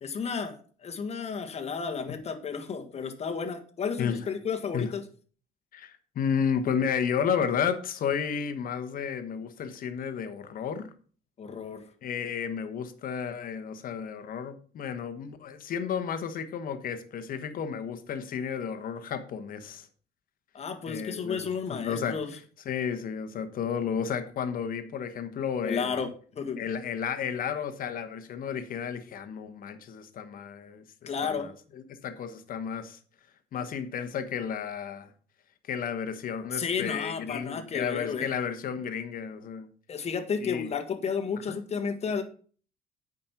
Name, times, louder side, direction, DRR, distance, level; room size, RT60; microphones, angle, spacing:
voice 1, 0.0-5.0 11.4-11.8 20.5-22.3 25.6-26.6 31.0-31.5 36.5-38.3 39.9-42.2, left 6 dB, 40° left, 5 dB, 1.6 m, -32 dB
voice 2, 5.7-10.9 12.0-19.9 20.9-22.4 22.6-26.0 26.6-33.0 33.5-35.1 35.7-39.7 40.4-40.7 41.5-41.6, left 7 dB, 55° left, 10 dB, 1.3 m, -32 dB
8.7 x 5.3 x 5.9 m, 0.43 s
cardioid pair, 110°, 17 cm